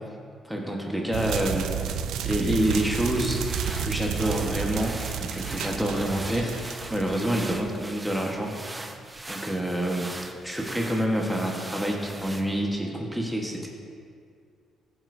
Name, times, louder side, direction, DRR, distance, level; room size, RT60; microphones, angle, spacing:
voice 1, 0.4-2.0 2.2-3.5 3.8-8.5 9.3-13.7, right 1 dB, ahead, -1 dB, 1.2 m, -27 dB
sound 1, 1.1-7.9, right 8 dB, 80° right, 0.4 m, -32 dB
sound 2, 2.1-12.8, right 2 dB, 20° right, 0.7 m, -41 dB
14.5 x 7.8 x 2.6 m, 2.3 s
cardioid pair, 90°, 0 cm